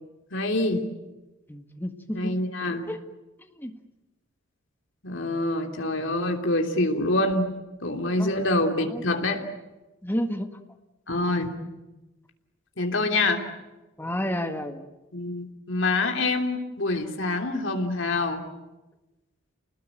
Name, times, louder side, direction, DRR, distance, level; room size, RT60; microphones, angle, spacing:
voice 1, 0.3-0.9 2.1-2.9 5.0-7.5 7.8-9.4 11.1-11.6 12.8-13.4 15.1-18.5, left 2 dB, 60° left, 3 dB, 3.2 m, -26 dB
voice 2, 1.5-2.4 2.9-3.0 3.4-3.8 8.2-8.3 10.0-10.5 14.0-14.9, equal, 10° left, 6 dB, 1.7 m, -30 dB
29.5 x 20.0 x 9.2 m, 1.1 s
head